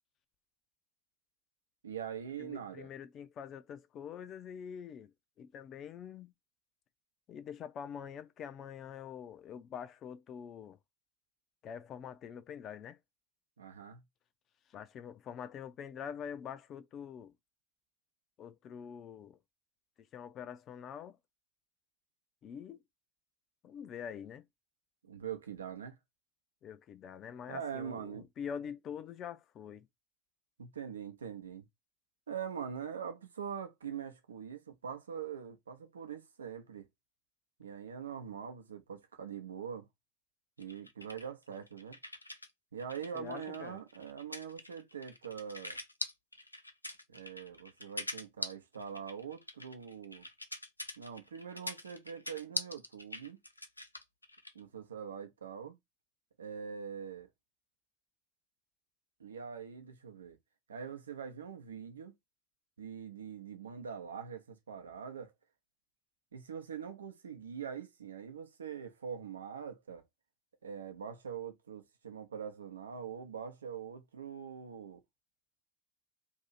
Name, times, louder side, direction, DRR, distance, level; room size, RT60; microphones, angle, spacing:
voice 1, 1.8-2.9 13.6-14.0 25.0-26.0 27.5-28.3 30.6-31.7 32.3-36.9 37.6-39.9 40.6-42.0 42.7-45.8 47.1-50.3 51.0-53.4 54.5-55.8 56.4-57.3 59.2-60.4 60.7-62.1 62.8-65.3 66.3-70.0 70.6-75.0, right 7 dB, 75° right, 0.6 m, -43 dB
voice 2, 2.4-5.1 5.4-6.3 7.3-10.8 11.6-13.0 14.7-17.3 18.4-19.4 20.1-21.2 22.4-22.8 23.6-24.4 26.6-29.9 43.1-43.8, left 8 dB, 35° left, 0.5 m, -45 dB
sound 1, 40.6-42.5 42.8-54.6, left 1 dB, 85° left, 0.4 m, -43 dB
2.7 x 2.7 x 4.0 m
figure-of-eight pair, 75°, 0 cm